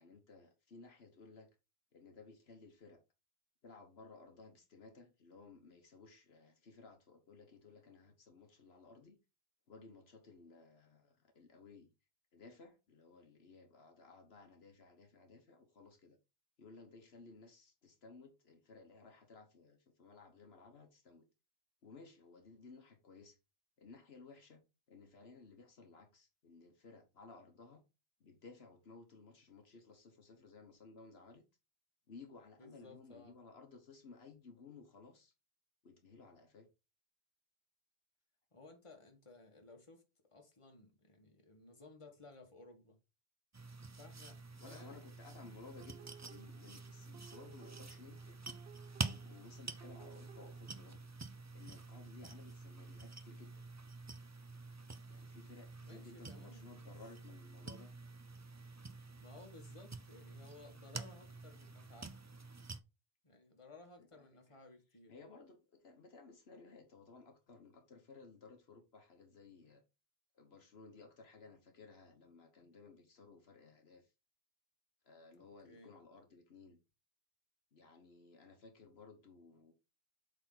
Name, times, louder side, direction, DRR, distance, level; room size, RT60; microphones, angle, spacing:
voice 1, 0.0-1.5 1.9-3.0 3.6-9.2 9.7-11.9 12.3-16.2 16.6-21.2 21.8-23.4 23.8-27.8 28.2-31.4 32.1-35.3 35.8-36.7 44.6-48.4 49.0-51.1 51.5-53.6 55.1-57.9 64.0-64.6 65.1-69.8 70.3-74.1 75.0-76.8 77.7-79.7, left 4 dB, 75° left, 1.4 m, -58 dB
voice 2, 32.6-33.4 38.5-40.0 40.3-43.0 43.9-45.0 52.0-52.2 55.8-56.9 59.2-62.2 63.2-65.1 75.3-75.9, left 3 dB, 30° left, 1.6 m, -58 dB
sound 1, 43.5-62.8, right 3 dB, 25° right, 0.3 m, -48 dB
sound 2, 45.8-50.6, right 12 dB, 75° right, 0.8 m, -60 dB
8.0 x 4.1 x 3.9 m
omnidirectional pair, 1.1 m